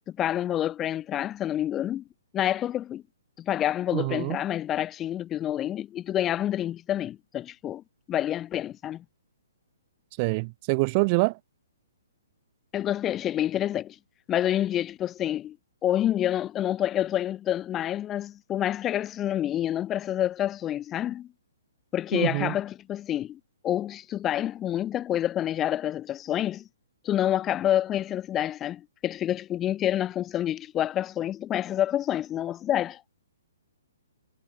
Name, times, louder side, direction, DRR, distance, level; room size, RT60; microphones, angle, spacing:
voice 1, 0.1-2.0 2.3-3.0 3.4-9.0 12.7-14.0 14.3-15.6 15.8-21.3 21.9-26.6 27.0-33.0, left 11 dB, 10° left, 1.3 m, -28 dB
voice 2, 3.9-4.4 10.2-11.4 22.1-22.5, right 30 dB, 25° right, 0.9 m, -25 dB
hypercardioid pair, 170°, 0 cm